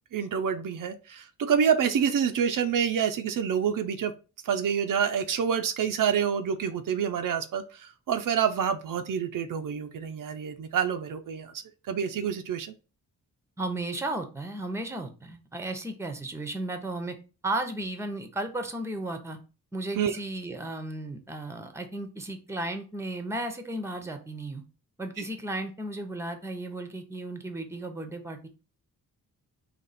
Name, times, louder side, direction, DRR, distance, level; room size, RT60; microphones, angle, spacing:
voice 1, 0.1-4.1 4.4-11.5 11.9-12.7 20.0-20.2 25.2-25.3, right 7 dB, 65° right, 7 dB, 0.5 m, -27 dB
voice 2, 13.6-17.2 17.4-19.4 19.7-24.6 25.0-28.5, right 2 dB, 10° right, 7 dB, 0.7 m, -34 dB
4.1 x 2.9 x 4.1 m, 0.33 s
cardioid pair, 110°, 35 cm